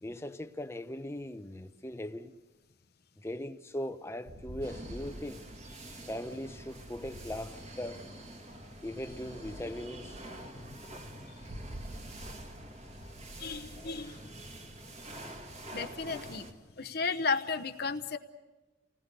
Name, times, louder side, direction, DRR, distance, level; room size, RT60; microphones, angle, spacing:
voice 1, 0.0-2.3 3.2-5.4 6.1-8.0 8.8-10.2 10.5-10.8 15.3-15.4, left 1 dB, 15° left, 0.8 m, -40 dB
sound 1, 4.3-8.2 9.0-15.3, right 1 dB, 75° right, 1.6 m, -49 dB
sound 2, 4.6-16.5, right 1 dB, 35° right, 2.2 m, -47 dB
voice 2, 13.4-14.3 15.7-16.5 16.8-18.2, left 4 dB, 55° left, 0.9 m, -34 dB
29.0 x 19.5 x 6.8 m
head